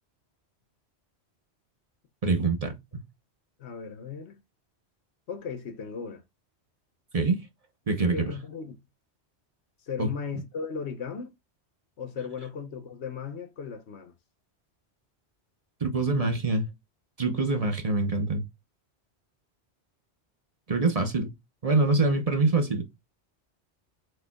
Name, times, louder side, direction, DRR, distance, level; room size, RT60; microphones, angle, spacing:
voice 1, 2.2-3.0 7.1-7.4 7.9-8.2 10.0-10.1 15.8-16.7 17.2-18.4 20.7-21.3 21.6-22.8, right 3 dB, 35° right, 0.8 m, -25 dB
voice 2, 3.6-4.4 5.3-6.2 8.1-8.8 9.9-11.3 12.0-14.1, left 6 dB, 75° left, 1.1 m, -36 dB
4.7 x 4.3 x 2.2 m
omnidirectional pair, 1.1 m